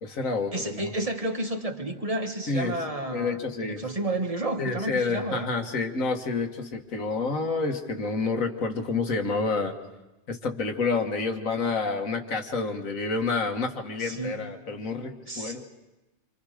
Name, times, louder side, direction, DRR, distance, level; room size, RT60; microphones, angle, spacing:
voice 1, 0.0-0.9 2.5-2.8 3.1-3.8 4.6-9.8 10.3-15.7, left 4 dB, 85° left, 5 dB, 2.0 m, -29 dB
voice 2, 0.5-5.5 14.0-14.4 15.3-15.6, right 1 dB, 25° right, 4 dB, 1.6 m, -31 dB
27.0 x 26.0 x 5.0 m, 1.0 s
omnidirectional pair, 1.4 m